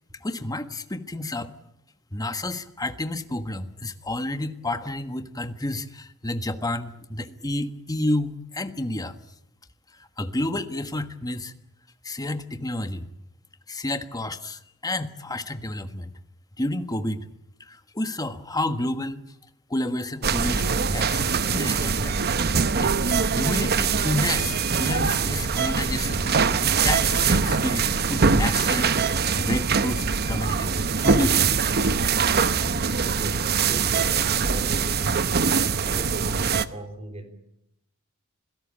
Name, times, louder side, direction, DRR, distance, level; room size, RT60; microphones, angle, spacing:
voice 1, 0.2-1.5 2.1-9.2 10.0-11.5 12.0-13.1 13.7-16.1 16.6-17.2 17.6-19.2 19.7-22.2 22.8-26.3 26.7-30.8 31.0-31.5, left 1 dB, 20° left, 9 dB, 1.5 m, -30 dB
sound 1, 20.2-36.7, right 5 dB, 50° right, 1.0 m, -23 dB
voice 2, 33.0-37.3, right 1 dB, 30° right, 7 dB, 3.5 m, -39 dB
27.0 x 17.0 x 8.7 m, 0.78 s
head